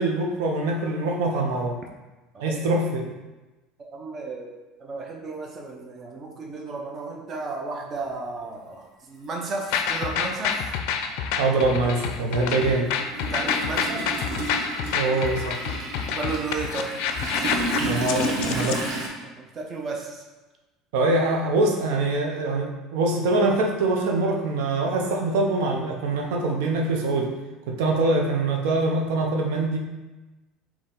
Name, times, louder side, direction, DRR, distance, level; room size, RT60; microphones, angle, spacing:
voice 1, 0.0-1.8 2.4-3.1 11.4-12.9 14.9-15.6 17.8-18.8 20.9-27.3 27.7-29.8, right 2 dB, 90° right, 1 dB, 0.6 m, -24 dB
voice 2, 3.9-4.5 4.8-10.7 13.3-14.1 16.1-16.9 19.2-20.2, right 3 dB, 35° right, 0 dB, 0.7 m, -33 dB
Toilet flush, 8.6-8.7 10.0-10.1 10.4-19.1, right 2 dB, 65° right, 1.0 m, -31 dB
sound 1, 9.7-18.8, left 7 dB, 75° left, 0.4 m, -28 dB
4.3 x 2.9 x 3.8 m, 1.1 s
cardioid pair, 145°, 0 cm